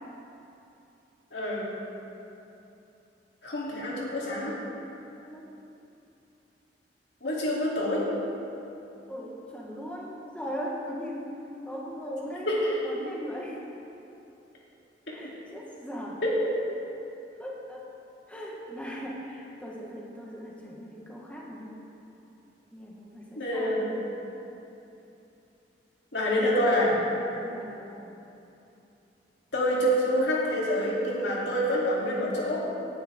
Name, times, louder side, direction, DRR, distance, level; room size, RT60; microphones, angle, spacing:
voice 1, 1.3-1.7 3.4-4.5 7.2-8.1 12.5-12.8 23.4-24.0 26.1-26.9 29.5-32.6, equal, 75° left, -5 dB, 3.0 m, -27 dB
voice 2, 9.1-11.3 11.6-13.6 15.1-16.2 17.4-17.9 18.3-21.8 22.7-24.0 26.2-26.9 27.3-28.1, equal, 10° left, -3 dB, 1.2 m, -39 dB
18.0 x 10.0 x 3.6 m, 2.9 s
head